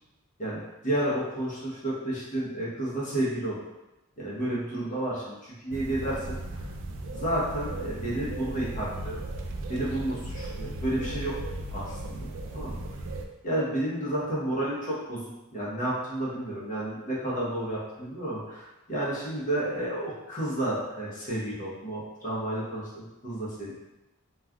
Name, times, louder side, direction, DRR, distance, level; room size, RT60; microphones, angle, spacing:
voice 1, 0.4-3.6 4.2-6.7 7.1-9.2 9.7-11.4 11.7-12.8 13.4-23.7, right 1 dB, 35° left, -7 dB, 0.9 m, -31 dB
sound 1, 5.7-13.3, right 1 dB, 60° right, 0.3 m, -36 dB
3.1 x 2.4 x 2.3 m, 0.96 s
head